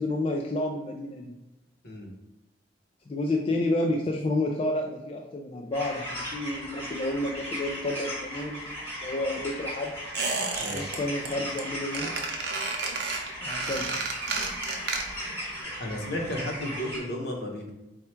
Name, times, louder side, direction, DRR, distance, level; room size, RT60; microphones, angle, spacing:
voice 1, 0.0-1.3 3.1-8.7 9.0-9.9 10.7-12.1 13.4-14.0, left 2 dB, 35° left, 0 dB, 0.3 m, -30 dB
sound 1, 5.7-17.0, equal, 15° left, 1.2 m, -37 dB
Squeak, 10.1-11.0 11.2-11.6 11.9-15.3 15.6-15.7, right 4 dB, 65° right, 0.7 m, -31 dB
voice 2, 10.6-10.9 15.8-17.7, left 1 dB, 65° left, 1 dB, 0.8 m, -33 dB
4.4 x 2.4 x 4.3 m, 0.97 s
head